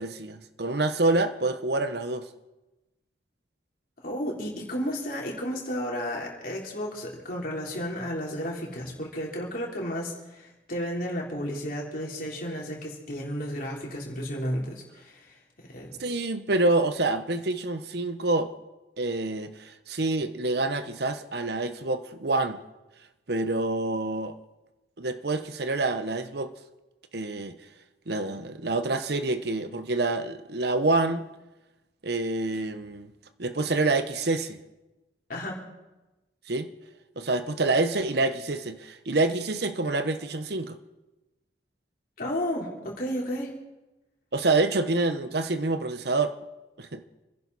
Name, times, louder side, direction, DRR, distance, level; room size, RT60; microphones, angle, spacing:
voice 1, 0.0-2.3 16.0-18.5 19.0-22.6 23.3-24.4 25.0-26.5 27.1-27.6 28.1-31.3 32.0-33.1 33.4-34.6 36.5-36.7 37.2-40.8 44.3-46.4 46.8-47.0, right 2 dB, 60° right, 1.0 m, -27 dB
voice 2, 4.0-15.4 15.7-15.9 35.3-35.6 42.2-43.5, equal, 50° left, 3.8 m, -33 dB
28.0 x 11.0 x 4.2 m
head